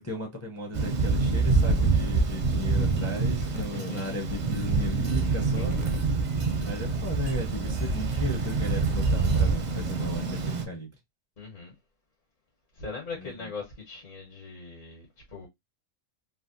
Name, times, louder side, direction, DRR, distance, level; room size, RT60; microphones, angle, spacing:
voice 1, 0.0-5.8 6.7-10.9 13.1-13.5, left 1 dB, 20° left, 0.4 m, -36 dB
Thunder, 0.7-10.6, right 4 dB, 50° right, 0.5 m, -26 dB
voice 2, 3.4-4.2 5.6-5.8 11.4-11.7 12.7-15.5, left 4 dB, 70° left, 1.6 m, -40 dB
3.3 x 2.3 x 2.5 m
omnidirectional pair, 1.4 m